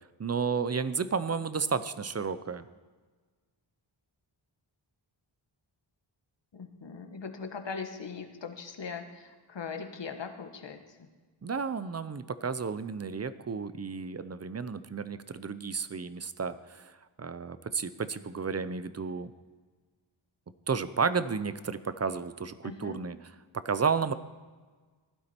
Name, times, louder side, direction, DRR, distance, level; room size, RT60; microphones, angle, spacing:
voice 1, 0.2-2.7 11.4-19.3 20.7-23.2 23.5-24.1, right 5 dB, 35° right, 13 dB, 0.6 m, -32 dB
voice 2, 6.5-11.1 22.6-23.0, left 5 dB, 65° left, 6 dB, 1.5 m, -40 dB
16.0 x 12.0 x 4.4 m, 1.4 s
wide cardioid pair, 120°, 47 cm